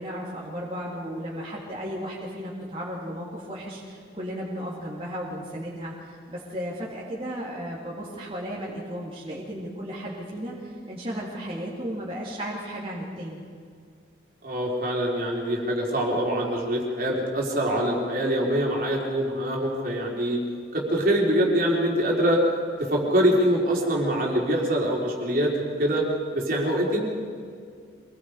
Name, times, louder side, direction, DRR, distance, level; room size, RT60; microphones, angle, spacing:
voice 1, 0.0-13.4, equal, 30° right, -6 dB, 3.1 m, -34 dB
voice 2, 14.4-20.4 20.7-22.4 22.8-26.0 26.3-27.0, right 1 dB, 50° right, -2 dB, 4.2 m, -24 dB
26.5 x 21.0 x 5.1 m, 2.1 s
head